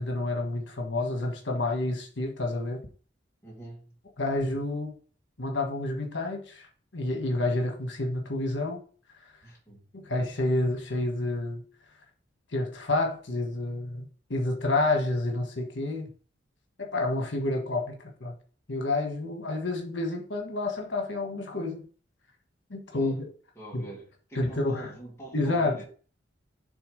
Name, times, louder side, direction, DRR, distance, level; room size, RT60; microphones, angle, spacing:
voice 1, 0.0-2.8 4.2-4.9 5.4-8.8 10.0-11.6 12.5-16.1 16.8-18.3 18.7-21.8 22.7-23.2 23.7-23.8 24.3-24.9 25.3-25.8, left 2 dB, 80° left, 1.4 m, -29 dB
voice 2, 3.4-3.9 9.4-9.8 22.9-23.2 23.6-25.9, right 2 dB, 15° left, 2.3 m, -45 dB
7.0 x 3.5 x 5.1 m
head